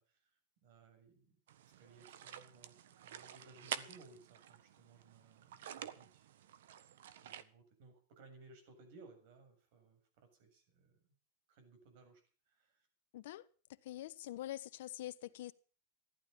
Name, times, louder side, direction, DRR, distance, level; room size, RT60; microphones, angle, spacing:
voice 1, 0.0-1.4 1.8-6.3 7.2-11.0 11.5-12.2 12.5-12.9, right 3 dB, 55° right, 7.3 m, -61 dB
sound 1, 1.5-7.4, right 10 dB, 75° right, 1.4 m, -49 dB
voice 2, 13.1-13.5 13.8-15.5, left 14 dB, 65° left, 1.2 m, -45 dB
15.0 x 11.5 x 7.1 m
supercardioid pair, 150°, 0 cm